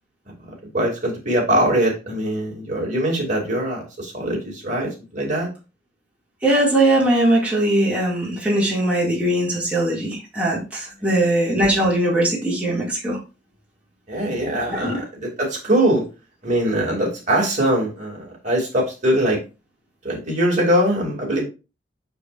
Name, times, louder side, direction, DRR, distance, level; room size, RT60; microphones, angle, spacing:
voice 1, 0.5-5.5 11.0-11.3 14.1-16.0 16.4-19.4 20.0-21.4, right 1 dB, 45° right, -2 dB, 2.8 m, -22 dB
voice 2, 6.4-13.2 14.7-15.0, right 1 dB, 10° right, -6 dB, 2.4 m, -20 dB
6.9 x 6.6 x 2.6 m, 0.30 s
head